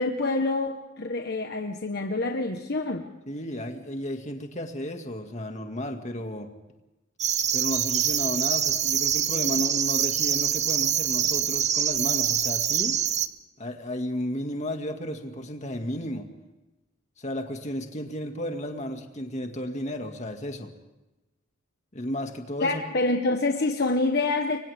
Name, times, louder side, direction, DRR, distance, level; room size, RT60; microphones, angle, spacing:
voice 1, 0.0-3.1 22.6-24.6, left 2 dB, 55° left, 4 dB, 1.3 m, -26 dB
voice 2, 3.3-6.5 7.5-13.0 13.6-16.3 17.2-20.7 21.9-22.8, equal, 35° left, 4 dB, 2.2 m, -33 dB
sound 1, 7.2-13.3, right 9 dB, 35° right, 0.9 m, -25 dB
30.0 x 24.0 x 3.6 m, 1.0 s
head